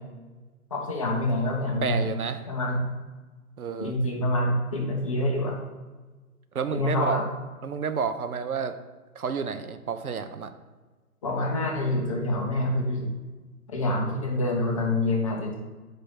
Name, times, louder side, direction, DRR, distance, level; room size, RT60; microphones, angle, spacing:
voice 1, 0.7-2.2 2.5-2.8 3.8-5.6 6.7-7.2 11.2-13.1 13.7-15.6, left 1 dB, 20° left, -1 dB, 0.7 m, -26 dB
voice 2, 1.8-2.4 3.6-3.9 6.5-7.2 7.6-8.7 9.1-10.5, right 6 dB, 70° right, 10 dB, 0.7 m, -30 dB
5.1 x 4.7 x 5.9 m, 1.3 s
figure-of-eight pair, 145°, 45 cm